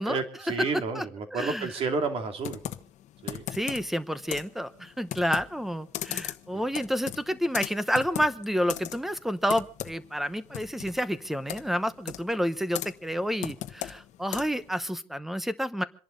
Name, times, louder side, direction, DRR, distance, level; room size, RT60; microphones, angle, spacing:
voice 1, 0.1-2.6 3.2-3.4, right 4 dB, 45° right, 5 dB, 2.7 m, -31 dB
voice 2, 1.3-1.7 3.5-15.8, equal, ahead, 13 dB, 0.9 m, -29 dB
Computer keyboard, 2.4-14.7, left 12 dB, 55° left, 1.1 m, -39 dB
27.5 x 11.0 x 4.0 m, 0.42 s
cardioid pair, 150°, 14 cm